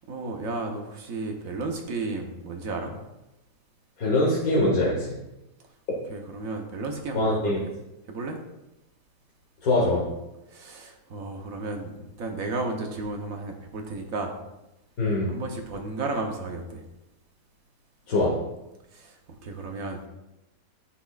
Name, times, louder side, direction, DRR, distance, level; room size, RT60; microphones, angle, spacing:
voice 1, 0.1-2.9 6.1-7.7 8.1-8.4 10.5-14.3 15.2-16.8 18.9-19.1 19.4-20.1, right 3 dB, 55° right, 3 dB, 1.2 m, -33 dB
voice 2, 4.0-5.2 7.1-7.6 9.6-10.0 15.0-15.3 18.1-18.3, left 2 dB, 55° left, -5 dB, 1.7 m, -23 dB
10.0 x 6.1 x 2.4 m, 0.94 s
omnidirectional pair, 1.9 m